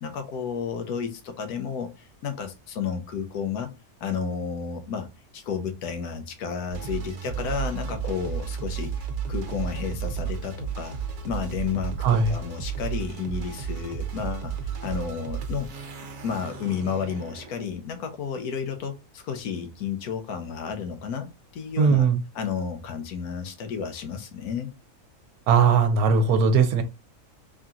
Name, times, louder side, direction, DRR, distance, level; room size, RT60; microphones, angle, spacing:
voice 1, 0.0-3.7 4.0-8.9 9.3-11.0 11.2-15.7 16.2-22.1 22.3-24.7, left 7 dB, 80° left, 1.3 m, -32 dB
sound 1, 6.7-17.8, right 7 dB, 55° right, 1.1 m, -33 dB
voice 2, 12.0-12.4 21.8-22.2 25.5-26.8, right 5 dB, 75° right, 1.2 m, -19 dB
3.7 x 2.8 x 3.7 m
omnidirectional pair, 1.6 m